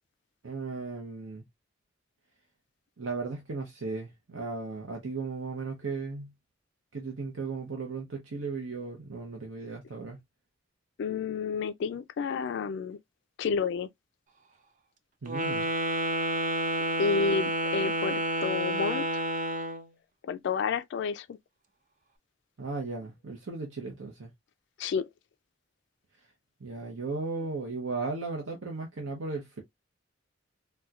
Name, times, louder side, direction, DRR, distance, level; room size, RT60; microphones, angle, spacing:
voice 1, 0.4-1.4 3.0-6.3 6.9-10.2 15.2-15.7 22.6-24.3 26.6-29.6, right 3 dB, 75° right, 0.8 m, -36 dB
voice 2, 11.0-13.0 13.4-13.9 17.0-19.2 20.3-21.3 24.8-25.1, left 5 dB, 65° left, 0.3 m, -30 dB
Wind instrument woodwind instrument, 15.3-19.9, right 1 dB, 40° right, 0.5 m, -29 dB
4.2 x 2.2 x 2.3 m
head